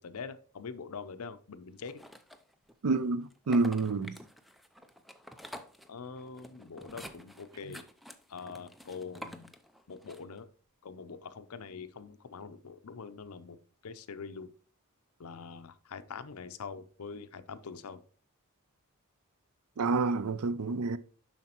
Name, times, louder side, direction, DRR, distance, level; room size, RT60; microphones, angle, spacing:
voice 1, 0.0-2.0 5.9-7.8 8.3-9.5 9.9-10.5 10.8-13.6 13.8-14.5 15.2-18.0, left 5 dB, 70° left, 0.6 m, -44 dB
sound 1, 1.9-2.7 3.3-10.4, equal, ahead, 0.5 m, -49 dB
voice 2, 2.8-4.2 7.7-7.8 19.8-21.0, right 3 dB, 70° right, 0.5 m, -28 dB
7.3 x 5.7 x 2.9 m
head